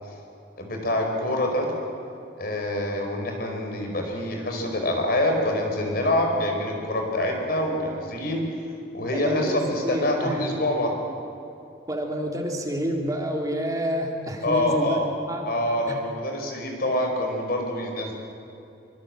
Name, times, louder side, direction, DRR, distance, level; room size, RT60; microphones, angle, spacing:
voice 1, 0.6-1.7 2.4-8.5 8.9-11.0 14.4-15.1 15.5-18.1, left 1 dB, 60° left, 2 dB, 5.0 m, -26 dB
voice 2, 9.1-10.5 11.9-15.0 15.3-15.5 15.9-16.0, equal, 20° right, 1 dB, 2.6 m, -28 dB
24.5 x 24.0 x 7.7 m, 2.7 s
head